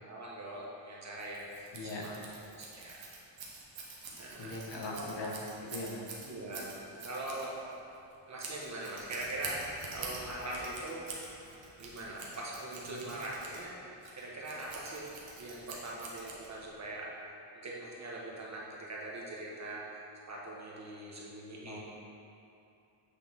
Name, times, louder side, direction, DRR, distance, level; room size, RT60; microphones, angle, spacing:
voice 1, 0.0-2.1 2.6-3.0 4.2-4.6 4.9-5.1 6.2-7.6 8.3-11.0 11.8-19.9 20.3-21.8, right 1 dB, 35° right, -4 dB, 1.1 m, -42 dB
Scissors, 1.2-16.8, right 4 dB, 75° right, 1.2 m, -47 dB
voice 2, 1.7-2.1 4.4-5.3 5.6-6.0 12.9-13.1 21.6-21.8, left 2 dB, 65° left, -2 dB, 1.0 m, -40 dB
8.0 x 3.5 x 3.6 m, 2.8 s
cardioid pair, 95°, 45 cm